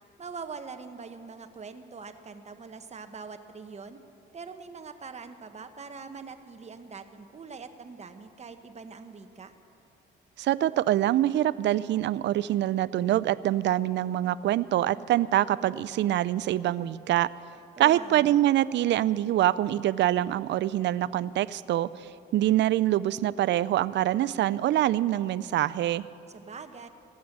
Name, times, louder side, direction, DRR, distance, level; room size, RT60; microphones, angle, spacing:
voice 1, 0.2-4.0 4.3-9.5 17.8-18.4 26.3-26.9, right 5 dB, 35° right, 8 dB, 1.0 m, -43 dB
voice 2, 10.4-17.3 17.8-26.0, right 13 dB, 65° right, 18 dB, 0.4 m, -25 dB
15.5 x 9.5 x 7.3 m, 2.7 s
cardioid pair, 90°, 20 cm